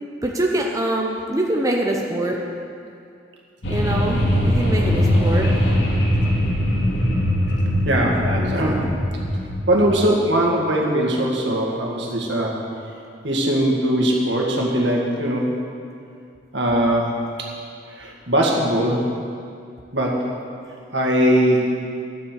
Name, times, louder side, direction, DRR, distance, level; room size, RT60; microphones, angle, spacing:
voice 1, 0.2-2.4 3.7-5.5 8.4-8.9, right 1 dB, 20° right, -1 dB, 0.8 m, -24 dB
sound 1, 3.6-9.8, left 1 dB, 70° left, 2.4 m, -21 dB
voice 2, 7.8-8.8 9.7-12.6 13.2-15.5 16.5-17.1 17.4-17.5 18.0-19.1 19.9-20.2 20.9-21.7, right 1 dB, 70° right, -1 dB, 2.1 m, -20 dB
12.0 x 7.8 x 7.8 m, 2.4 s
head